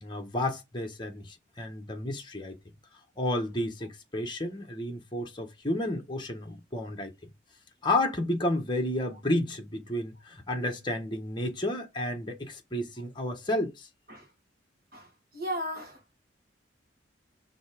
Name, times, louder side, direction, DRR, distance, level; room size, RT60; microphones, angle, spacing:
voice 1, 0.0-2.6 3.2-7.1 7.8-13.9, left 1 dB, 25° left, 1.3 m, -31 dB
voice 2, 14.9-16.1, equal, 50° right, 1.9 m, -37 dB
5.3 x 3.5 x 5.0 m
head